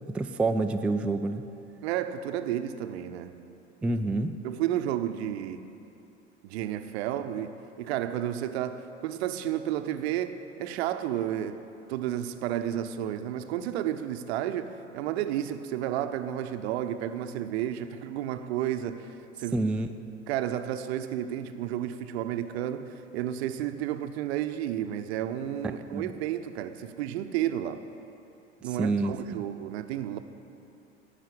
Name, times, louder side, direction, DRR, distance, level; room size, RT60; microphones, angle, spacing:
voice 1, 0.1-1.4 3.8-4.3 19.5-19.9 25.9-26.1 28.8-29.4, right 2 dB, 5° right, 0.3 m, -27 dB
voice 2, 1.8-3.4 3.8-3.9 4.4-5.7 6.4-11.6 11.9-19.1 19.4-19.7 20.3-27.8 28.6-30.2, right 11 dB, 60° right, 0.8 m, -32 dB
15.0 x 5.7 x 8.4 m
figure-of-eight pair, 75°, 35 cm